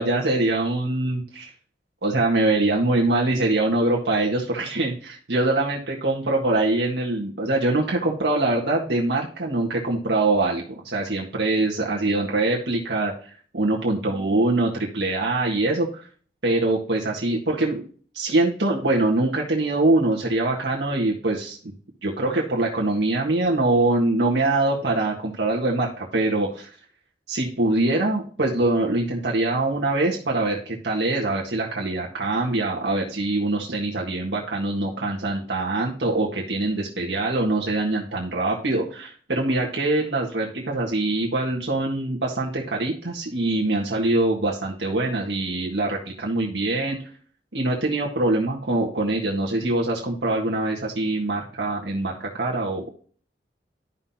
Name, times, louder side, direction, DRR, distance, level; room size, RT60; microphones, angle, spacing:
voice 1, 0.0-1.5 2.0-16.1 16.4-17.8 18.1-21.6 22.0-26.7 27.3-47.0 47.5-52.9, right 2 dB, 80° right, -2 dB, 1.6 m, -23 dB
12.0 x 5.6 x 2.8 m, 0.43 s
head